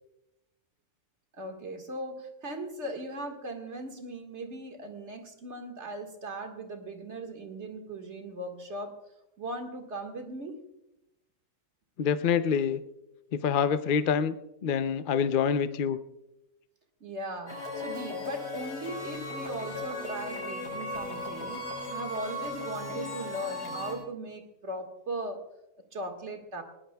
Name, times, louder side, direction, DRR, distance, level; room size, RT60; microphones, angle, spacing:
voice 1, 1.3-8.9 9.4-10.6 17.0-25.4 25.9-26.6, right 1 dB, 45° right, 5 dB, 2.0 m, -38 dB
voice 2, 12.0-12.8 13.4-14.4 14.6-16.0, left 7 dB, 60° left, 11 dB, 0.5 m, -26 dB
sound 1, 17.5-23.9, left 2 dB, 80° left, 5.0 m, -37 dB
21.0 x 17.5 x 2.3 m, 0.90 s
omnidirectional pair, 1.7 m